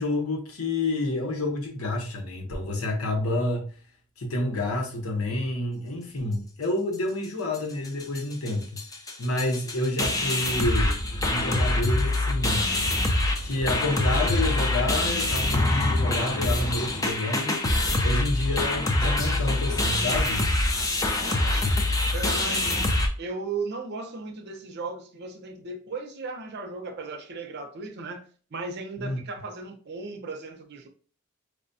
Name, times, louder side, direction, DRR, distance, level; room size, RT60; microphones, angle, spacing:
voice 1, 0.0-3.7 4.2-8.8 9.2-11.0 11.3-12.7 13.4-17.6 18.0-20.4 29.0-29.2, left 1 dB, 85° left, 0.9 m, -29 dB
sound 1, 7.5-7.6 7.8-8.2 8.5-8.6 8.8-23.1, left 2 dB, 15° left, 0.5 m, -25 dB
voice 2, 21.2-22.9 23.2-28.2 28.5-30.9, right 3 dB, 50° right, 0.6 m, -36 dB
4.7 x 2.2 x 2.6 m
head